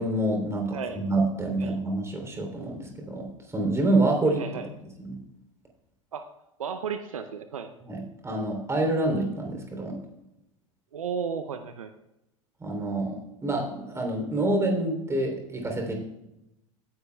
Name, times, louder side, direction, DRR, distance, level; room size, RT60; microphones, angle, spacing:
voice 1, 0.0-3.3 3.5-4.6 5.0-5.2 7.8-10.0 12.6-16.0, right 2 dB, 15° right, 2 dB, 3.2 m, -27 dB
voice 2, 4.2-4.7 6.1-6.2 6.6-7.7 10.9-11.9, right 6 dB, 80° right, 9 dB, 0.7 m, -34 dB
17.0 x 10.5 x 2.3 m, 0.91 s
figure-of-eight pair, 85°, 17 cm